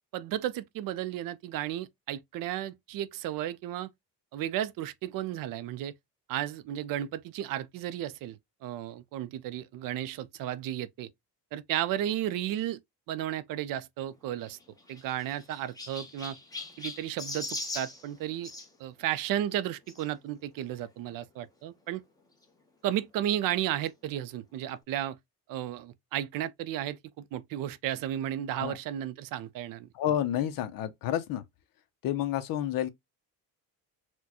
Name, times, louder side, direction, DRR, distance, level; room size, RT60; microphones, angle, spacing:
voice 1, 0.1-3.9 4.3-5.9 6.3-11.1 11.5-12.8 13.1-14.6 14.9-16.4 16.8-18.5 18.8-22.0 22.8-25.2 25.5-29.9, right 12 dB, 60° right, 0.5 m, -33 dB
Chirp tweet, 14.4-18.7 19.9-20.1 20.8-20.9 21.1-21.2 22.4-22.5, left 2 dB, 10° left, 0.8 m, -40 dB
voice 2, 29.9-31.4 32.0-32.9, left 11 dB, 60° left, 0.7 m, -30 dB
4.3 x 2.2 x 2.8 m
cardioid pair, 150°, 37 cm